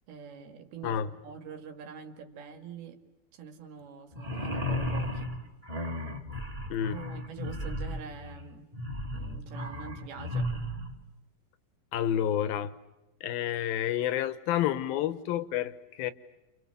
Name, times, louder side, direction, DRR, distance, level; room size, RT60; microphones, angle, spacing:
voice 1, 0.1-3.0 3.3-5.4 6.9-8.7 9.1-10.5, right 6 dB, 80° right, 4.0 m, -45 dB
sound 1, 4.1-10.9, left 1 dB, 10° right, 2.3 m, -34 dB
voice 2, 11.9-12.7 13.2-16.1, left 10 dB, 75° left, 2.8 m, -29 dB
30.0 x 28.0 x 7.0 m
omnidirectional pair, 4.4 m